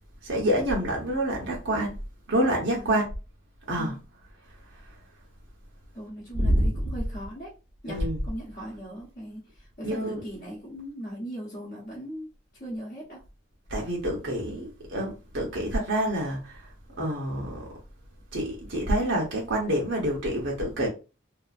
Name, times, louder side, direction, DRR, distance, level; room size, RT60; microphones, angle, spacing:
voice 1, 0.2-1.9 2.3-3.1 3.7-4.0 4.9-5.0 6.3-6.7 7.9-8.2 9.8-10.2 13.7-16.7 17.0-17.7 18.3-20.9, right 1 dB, 80° right, 0.9 m, -27 dB
voice 2, 5.9-7.5 7.8-12.3 12.6-13.2, equal, 45° left, 0.8 m, -38 dB
2.7 x 2.5 x 2.4 m
head